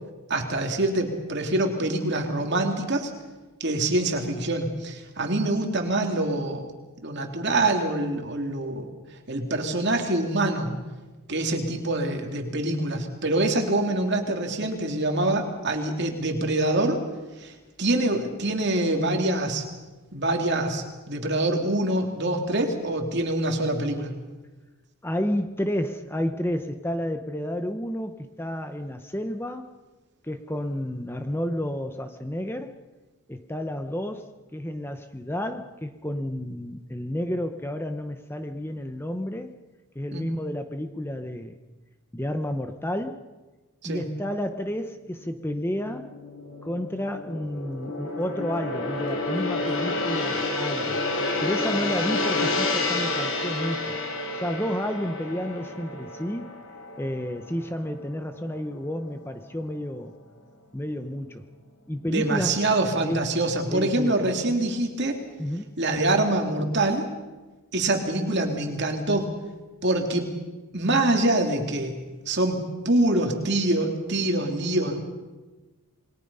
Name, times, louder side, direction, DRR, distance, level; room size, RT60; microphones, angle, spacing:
voice 1, 0.3-3.1 3.6-6.7 7.0-8.9 9.3-10.7 11.3-17.0 17.4-17.5 17.8-19.6 20.1-24.1 40.1-40.2 43.8-44.0 62.1-65.2 65.8-67.1 67.7-69.3 69.8-70.3 70.7-72.0 72.3-75.1, right 2 dB, 50° right, 3 dB, 2.9 m, -25 dB
voice 2, 25.0-29.7 30.2-32.8 33.3-39.5 39.9-41.6 42.1-43.3 43.8-46.1 46.6-51.0 51.4-54.0 54.3-56.5 57.0-60.1 60.7-61.5 61.9-62.7 63.0-63.3 63.7-64.3 65.4-65.7, equal, 10° left, 8 dB, 0.8 m, -31 dB
Gong, 45.4-57.9 58.2-58.5, left 2 dB, 65° left, 4.0 m, -29 dB
27.5 x 21.5 x 5.6 m, 1.2 s
head